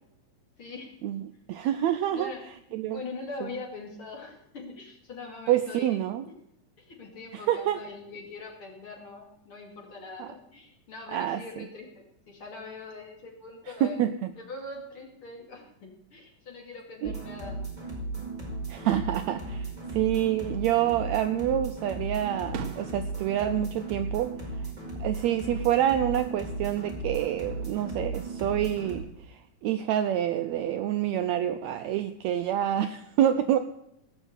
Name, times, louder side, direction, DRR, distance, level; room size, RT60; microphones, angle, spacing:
voice 1, 0.6-0.9 2.1-2.4 2.9-6.0 6.8-14.1 14.4-17.6 18.9-19.0, left 3 dB, 45° left, 0 dB, 3.0 m, -42 dB
voice 2, 1.5-2.3 2.7-3.0 5.5-6.3 7.3-7.8 10.2-10.3 11.1-11.7 13.8-14.1 17.0-17.2 18.7-24.7 25.0-33.6, right 11 dB, 80° right, 9 dB, 1.7 m, -27 dB
sound 1, 17.0-29.0, right 2 dB, 10° right, 4.8 m, -36 dB
Fireworks, 21.3-21.4 21.9-25.0 25.3-25.9 27.4-28.2, right 7 dB, 65° right, 1.9 m, -44 dB
17.5 x 6.3 x 8.1 m, 0.79 s
omnidirectional pair, 3.7 m